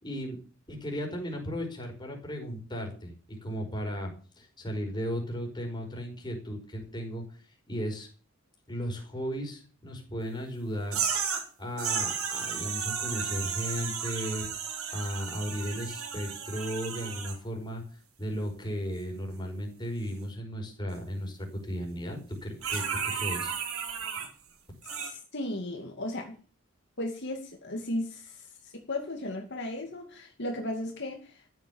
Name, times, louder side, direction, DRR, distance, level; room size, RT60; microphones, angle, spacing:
voice 1, 0.0-0.4 0.7-3.1 3.4-4.1 4.4-7.2 7.7-8.1 8.7-11.0 11.6-23.6, equal, 20° left, 2 dB, 5.3 m, -35 dB
sound 1, 10.9-11.5 11.8-17.4 22.6-24.3 24.8-25.1, right 7 dB, 85° right, 4.3 m, -33 dB
voice 2, 24.8-26.4 27.0-31.5, left 1 dB, 55° left, 2 dB, 2.5 m, -36 dB
14.5 x 9.5 x 7.2 m, 0.39 s
head